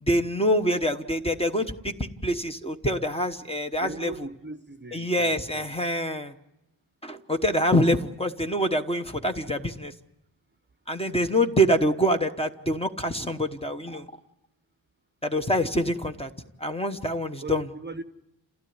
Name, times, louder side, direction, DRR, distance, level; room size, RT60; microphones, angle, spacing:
voice 1, 0.0-4.1 4.9-6.3 7.0-9.9 10.9-14.1 15.2-16.3 16.6-17.7, equal, 10° left, 1.1 m, -25 dB
voice 2, 3.8-5.7 17.4-18.0, right 2 dB, 25° right, 0.8 m, -39 dB
28.5 x 16.0 x 9.5 m
wide cardioid pair, 165°, 46 cm